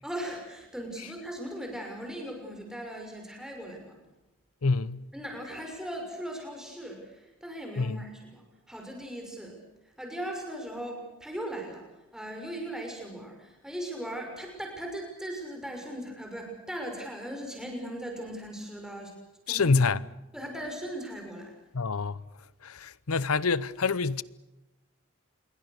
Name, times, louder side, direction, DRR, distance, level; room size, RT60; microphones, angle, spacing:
voice 1, 0.0-4.0 5.1-9.5 10.0-11.8 12.1-19.1 19.5-19.8 20.3-21.6, right 1 dB, 5° right, 6.0 m, -38 dB
voice 2, 4.6-5.0 7.8-8.0 19.5-20.0 21.7-22.2 22.6-24.2, left 4 dB, 85° left, 0.8 m, -26 dB
27.5 x 22.5 x 6.6 m
head